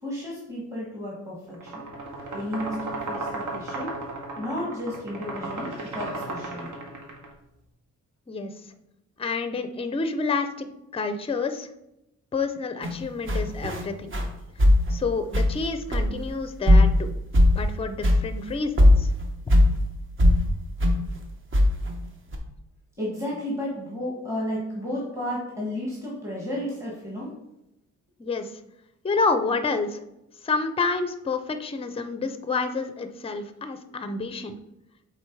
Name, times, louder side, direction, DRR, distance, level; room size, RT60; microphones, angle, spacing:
voice 1, 0.0-1.8 2.3-4.0 4.4-6.8 23.0-27.3, left 1 dB, 10° right, -5 dB, 1.6 m, -33 dB
sound 1, 1.5-7.3, right 2 dB, 80° right, 1.8 m, -34 dB
voice 2, 9.2-10.7 10.9-11.7 12.3-14.1 14.9-17.1 17.6-19.1 19.6-19.7 28.2-28.6 29.0-30.0 30.4-34.6, left 4 dB, 20° left, 9 dB, 0.5 m, -28 dB
sound 2, 12.8-12.9 13.3-13.8 14.1-14.3 14.6-15.0 15.3-15.7 15.9-16.3 16.7-17.1 17.3-17.7 18.0-18.2 18.5-18.6 18.8-19.7 20.2-20.4 20.8-21.0 21.5-22.0 22.3-22.4, left 1 dB, 40° right, 1.1 m, -18 dB
7.8 x 3.7 x 4.6 m, 0.89 s
wide cardioid pair, 140°, 30 cm